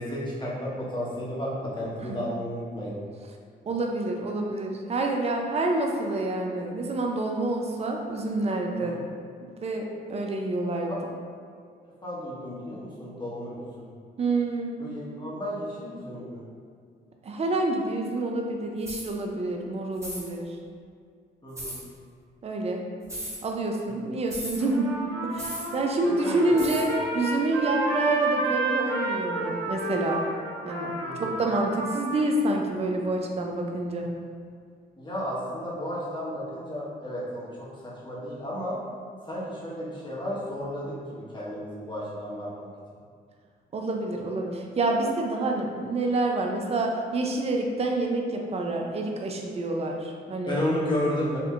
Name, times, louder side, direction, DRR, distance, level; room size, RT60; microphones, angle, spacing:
voice 1, 0.0-3.0 8.8-9.0 10.9-11.0 12.0-13.9 14.8-16.4 21.4-21.8 26.2-26.9 31.0-31.4 35.0-37.7 38.0-38.8 39.2-42.7 50.5-51.4, left 1 dB, 20° left, -7 dB, 1.3 m, -33 dB
voice 2, 3.7-9.0 9.6-11.1 14.2-14.7 17.2-20.5 22.4-22.9 23.4-24.9 25.2-30.2 30.6-34.1 43.7-50.6, right 2 dB, 30° right, 1 dB, 0.5 m, -28 dB
sound 1, 18.8-19.1 20.0-20.3 21.6-21.8 23.0-23.4 24.3-24.6 25.4-25.7 26.6-26.9, right 1 dB, 15° right, 1.2 m, -36 dB
Trumpet, 24.6-32.2, right 2 dB, 75° right, 0.9 m, -31 dB
4.4 x 2.7 x 2.5 m, 2.1 s
supercardioid pair, 55°, 21 cm